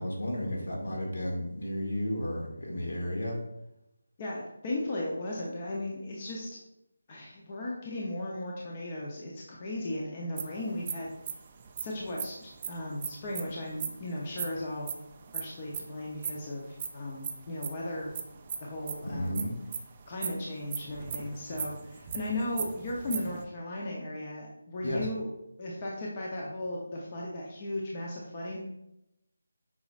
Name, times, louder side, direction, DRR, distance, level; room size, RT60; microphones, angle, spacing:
voice 1, 0.0-3.4 19.0-19.5 24.8-25.1, left 1 dB, 65° left, 0 dB, 2.1 m, -33 dB
voice 2, 4.2-6.6 7.1-11.1 11.8-14.9 15.3-18.2 18.6-19.4 20.1-25.3 25.6-28.6, left 1 dB, 20° left, -3 dB, 0.7 m, -36 dB
sound 1, 10.4-13.9 14.2-15.9 16.2-23.4, right 7 dB, 20° right, 0.4 m, -37 dB
8.3 x 5.1 x 2.5 m, 0.84 s
figure-of-eight pair, 175°, 0 cm